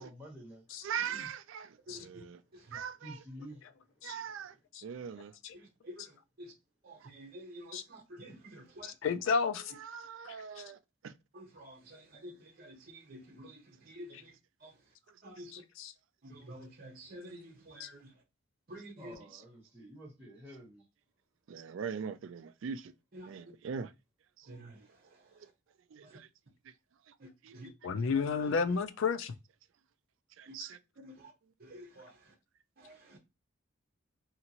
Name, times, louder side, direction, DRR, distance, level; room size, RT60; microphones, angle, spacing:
voice 1, 0.0-0.6 0.9-1.3 2.7-3.6 19.0-20.8, equal, 10° right, 1.3 m, -50 dB
voice 2, 0.8-2.4 2.7-3.2 4.0-4.6 4.8-5.4 7.0-7.1 9.7-11.1 15.1-15.5 19.3-19.4 21.5-22.9 23.3-23.9 24.4-24.5 25.9-26.3 26.6-26.7 27.1-27.2 27.4-27.5 28.2-28.3 30.4-30.8, right 7 dB, 65° right, 0.3 m, -41 dB
voice 3, 1.9-2.2 2.7-2.8 5.8-6.0 6.4-6.5 6.8-8.9 11.3-13.6 13.9-14.3 14.6-14.7 15.2-15.5 16.2-18.1 18.7-19.1 23.1-23.3 24.5-24.8 27.2-27.7 28.4-28.5 30.5-30.6 31.0-31.3 31.6-32.1 32.8-33.2, equal, 45° right, 0.8 m, -49 dB
voice 4, 8.8-9.7 10.2-10.3 15.5-15.9 17.8-17.9 27.8-29.3, left 5 dB, 70° left, 0.4 m, -32 dB
2.8 x 2.5 x 2.7 m
head